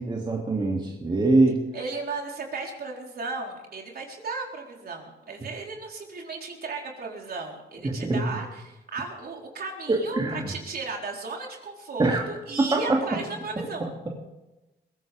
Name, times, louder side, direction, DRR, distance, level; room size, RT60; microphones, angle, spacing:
voice 1, 0.0-1.6 7.8-8.2 9.9-10.5 12.0-12.2 12.6-13.0 13.8-14.1, right 2 dB, 25° right, -1 dB, 2.8 m, -23 dB
voice 2, 1.7-13.9, right 3 dB, 50° right, 0 dB, 4.3 m, -35 dB
22.0 x 15.5 x 3.6 m, 1.0 s
cardioid pair, 90°, 20 cm